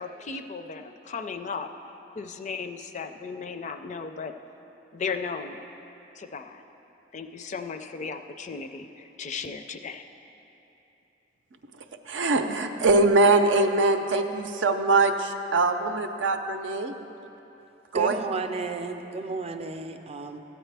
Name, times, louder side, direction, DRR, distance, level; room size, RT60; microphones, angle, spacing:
voice 1, 0.0-1.7 2.2-4.3 4.9-5.7 6.2-6.6 7.1-10.0, left 5 dB, 40° left, 8 dB, 0.4 m, -36 dB
voice 2, 12.1-16.9 17.9-18.2, right 3 dB, 80° right, 6 dB, 0.6 m, -22 dB
voice 3, 17.9-20.4, right 3 dB, 35° right, 6 dB, 0.5 m, -33 dB
13.5 x 9.0 x 3.4 m, 3.0 s
head